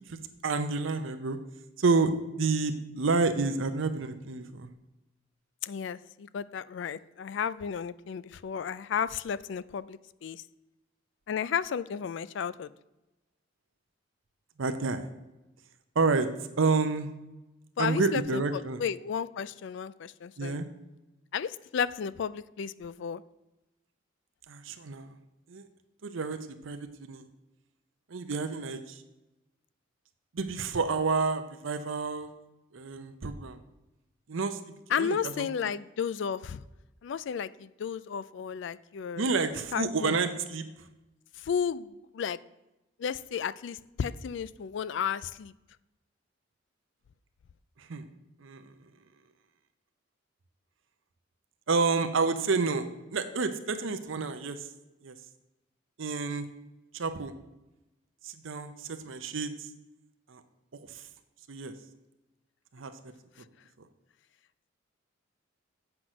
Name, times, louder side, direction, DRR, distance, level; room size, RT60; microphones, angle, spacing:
voice 1, 0.1-1.4 1.8-4.7 14.6-15.1 16.0-16.3 16.6-17.1 17.8-18.8 20.4-20.7 24.5-25.1 25.5-25.6 26.0-27.2 28.1-29.0 30.3-32.3 32.7-33.6 34.3-35.5 39.1-40.7 47.8-48.0 48.4-48.6 51.7-54.7 55.0-55.1 56.0-56.5 56.9-57.3 58.2-59.7 60.3-60.4 60.9-61.0 61.5-61.7 62.7-62.9, right 4 dB, 75° right, 9 dB, 0.6 m, -29 dB
voice 2, 5.6-10.4 11.3-12.7 17.8-20.6 21.3-23.2 34.9-36.6 37.0-39.3 39.7-40.2 41.4-42.4 43.0-45.5, left 7 dB, 60° left, 17 dB, 0.3 m, -33 dB
7.8 x 5.9 x 6.0 m, 0.99 s
head